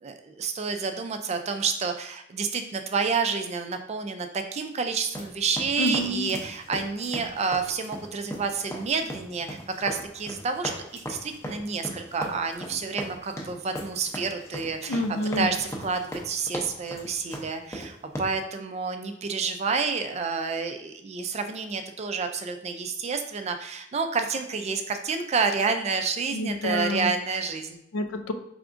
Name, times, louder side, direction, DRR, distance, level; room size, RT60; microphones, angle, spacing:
voice 1, 0.0-15.0 15.4-27.8, right 5 dB, 35° right, 7 dB, 0.4 m, -29 dB
sound 1, 5.1-18.2, equal, 15° left, 0.6 m, -38 dB
voice 2, 5.8-6.3 14.9-15.5 26.3-27.1 27.9-28.3, left 1 dB, 65° left, 7 dB, 0.4 m, -28 dB
4.8 x 3.4 x 2.5 m, 0.80 s
head